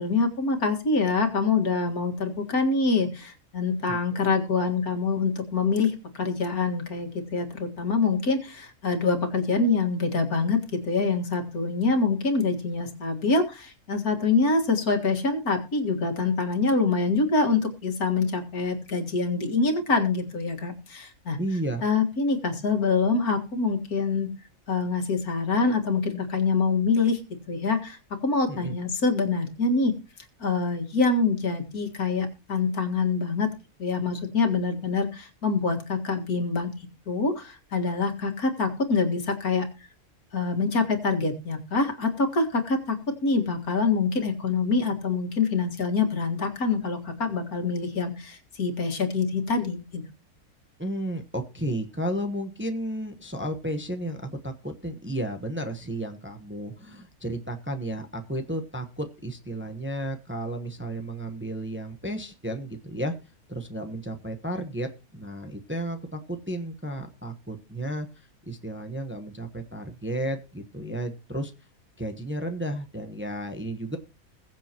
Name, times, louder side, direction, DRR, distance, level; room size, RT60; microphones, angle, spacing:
voice 1, 0.0-21.4 21.8-24.3 24.7-29.9 30.4-33.5 33.8-36.7 37.1-39.7 40.3-50.0, left 4 dB, 80° left, 4 dB, 2.3 m, -25 dB
voice 2, 21.4-21.9 28.5-28.7 50.8-63.1 63.5-68.1 68.5-71.5 72.0-74.0, right 1 dB, 10° right, 5 dB, 0.9 m, -33 dB
21.5 x 7.4 x 2.9 m, 0.31 s
omnidirectional pair, 1.5 m